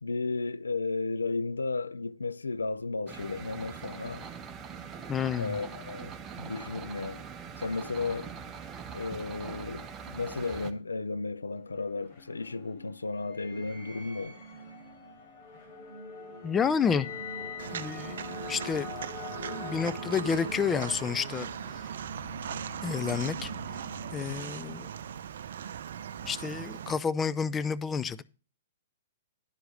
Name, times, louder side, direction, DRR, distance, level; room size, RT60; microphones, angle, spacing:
voice 1, 0.0-4.2 5.4-7.2 7.6-8.3 8.9-14.4, left 3 dB, 85° left, 0.5 m, -34 dB
sound 1, 3.1-10.7, right 6 dB, 20° right, 1.2 m, -43 dB
voice 2, 5.1-5.5 16.4-17.1 17.7-18.9 19.5-21.5 22.8-23.5 24.1-24.9 26.2-28.2, left 6 dB, 15° left, 0.5 m, -30 dB
sound 2, 11.4-25.2, left 2 dB, 40° left, 3.6 m, -43 dB
Walk footsteps, 17.6-26.9, right 9 dB, 65° right, 0.6 m, -39 dB
11.5 x 4.8 x 6.3 m
hypercardioid pair, 120°, 0 cm